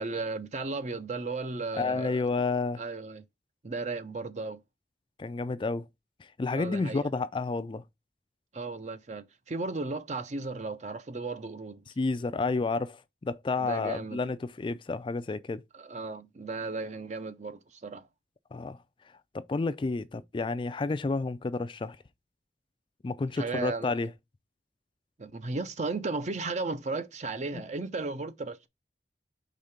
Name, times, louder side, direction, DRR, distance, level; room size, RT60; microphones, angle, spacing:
voice 1, 0.0-2.3 2.8-3.2 3.6-4.6 6.5-7.1 8.5-11.8 13.6-14.2 15.7-18.1 23.4-23.9 25.2-28.7, right 3 dB, 40° right, 0.6 m, -35 dB
voice 2, 1.7-2.8 5.2-5.9 6.2-7.8 12.0-15.6 18.5-18.8 19.3-22.0 23.0-24.1 27.5-27.6, left 3 dB, 30° left, 0.3 m, -30 dB
5.1 x 3.6 x 5.6 m
head